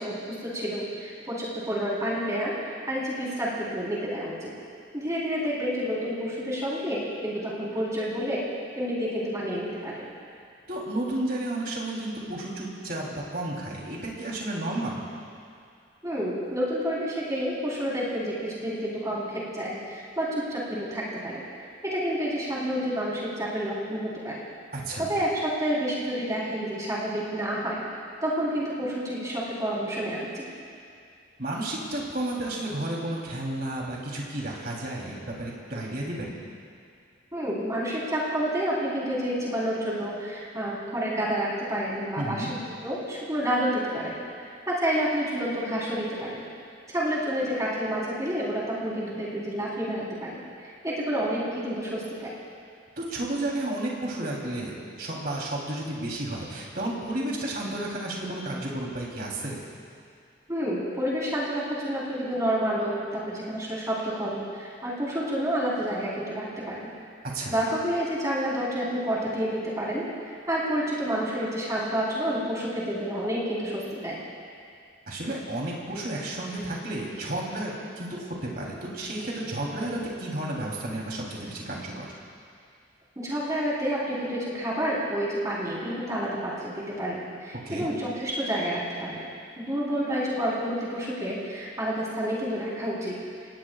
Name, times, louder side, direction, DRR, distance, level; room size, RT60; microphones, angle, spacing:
voice 1, 0.0-4.5 4.9-8.5 8.8-10.1 16.0-21.4 21.8-24.4 25.0-27.8 28.2-30.4 37.3-42.5 42.8-44.2 44.7-46.4 46.9-52.3 60.5-66.9 67.5-74.2 83.2-89.2 89.6-93.2, equal, 15° right, -6 dB, 4.0 m, -29 dB
voice 2, 10.7-15.0 24.7-25.1 31.4-36.4 42.2-42.6 53.0-59.6 67.2-67.5 75.1-82.1 87.6-87.9, right 1 dB, 50° right, -3 dB, 3.3 m, -32 dB
29.5 x 18.5 x 2.4 m, 2.4 s
head